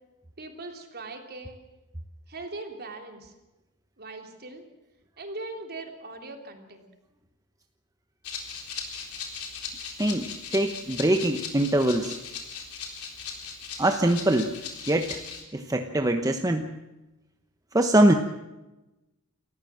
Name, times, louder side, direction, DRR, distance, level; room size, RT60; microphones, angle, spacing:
voice 1, 0.4-1.6 2.3-3.3 4.0-4.7 5.2-6.9, right 2 dB, 45° right, 4 dB, 3.4 m, -40 dB
Rattle (instrument), 8.2-15.4, left 6 dB, 80° left, 4.1 m, -38 dB
voice 2, 10.0-12.2 13.8-14.5 14.9-15.2 15.5-16.7 17.7-18.1, right 1 dB, 15° right, 5 dB, 1.0 m, -23 dB
28.5 x 14.5 x 7.6 m, 1.0 s
head